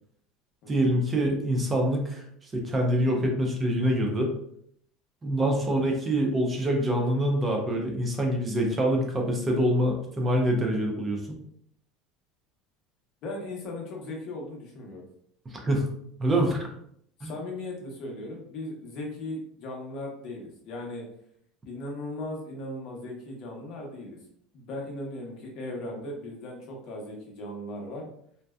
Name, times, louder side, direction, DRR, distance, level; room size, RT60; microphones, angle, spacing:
voice 1, 0.7-4.3 5.2-11.4 15.5-15.9 16.2-16.7 17.2-17.3, right 1 dB, 15° right, 1 dB, 0.4 m, -25 dB
voice 2, 13.2-15.0 17.2-21.0 21.7-24.2 24.5-28.1, left 1 dB, 45° left, 0 dB, 0.7 m, -37 dB
2.6 x 2.2 x 2.2 m, 0.68 s
cardioid pair, 170°, 0 cm